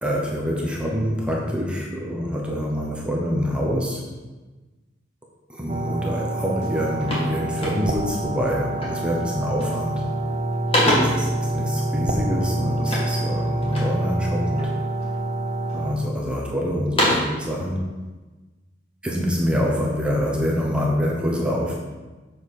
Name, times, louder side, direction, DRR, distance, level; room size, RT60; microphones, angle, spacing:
voice 1, 0.0-4.0 5.5-10.0 10.9-14.7 15.7-17.9 19.0-21.7, equal, 5° right, -2 dB, 1.0 m, -25 dB
sound 1, 5.7-15.9, right 2 dB, 35° right, 0.6 m, -27 dB
sound 2, 6.2-6.3 6.6-8.2 8.8-9.1 9.4-9.9 10.3-11.3 12.8-14.0 14.5-15.2 15.7-16.4 16.7-17.4, left 1 dB, 30° left, 2.1 m, -26 dB
7.4 x 6.4 x 4.9 m, 1.2 s
head